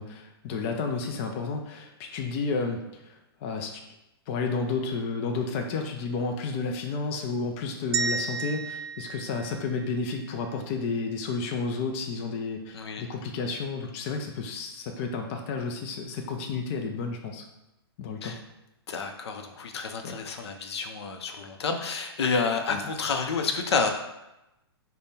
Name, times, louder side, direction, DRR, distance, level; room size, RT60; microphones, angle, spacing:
voice 1, 0.0-3.2 3.4-3.8 4.3-17.4 18.0-18.3 20.0-20.2 22.7-22.8, left 4 dB, 30° left, 3 dB, 0.3 m, -31 dB
sound 1, 7.9-10.2, right 5 dB, 70° right, 0.4 m, -32 dB
voice 2, 12.7-13.1 18.2-18.4 18.9-23.9, left 4 dB, 80° left, 5 dB, 0.5 m, -29 dB
3.5 x 2.1 x 4.1 m, 0.92 s
hypercardioid pair, 150°, 14 cm